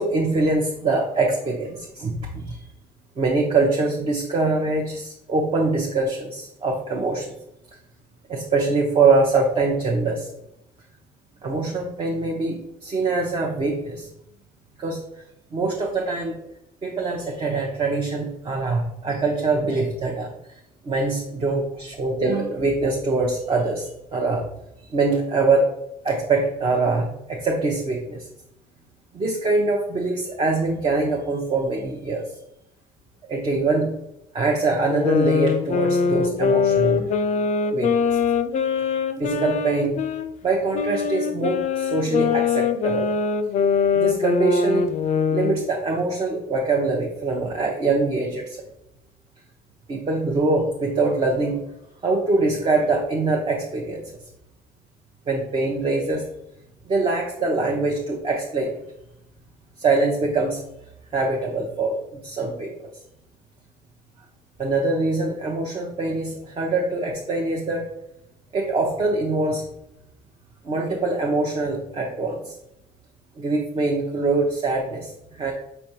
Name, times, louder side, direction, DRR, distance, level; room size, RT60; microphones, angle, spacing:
voice 1, 0.0-2.7 3.2-7.3 8.3-10.3 11.4-14.1 14.8-15.2 15.5-16.4 16.8-24.5 24.9-25.7 26.0-28.3 29.1-32.3 33.3-34.0 34.3-37.1 37.6-38.2 39.2-39.9 40.4-43.1 43.9-44.9 45.3-48.7 49.9-51.6 52.0-54.2 55.3-56.3 56.9-58.8 59.8-60.6 61.1-62.9 64.6-67.9 68.5-69.7 70.6-72.6 73.4-75.5, right 3 dB, 35° right, -1 dB, 0.8 m, -23 dB
sound 1, 34.9-40.3 40.7-45.6, left 6 dB, 45° left, 0.4 m, -22 dB
5.4 x 3.4 x 2.8 m, 0.83 s
cardioid pair, 110°, 17 cm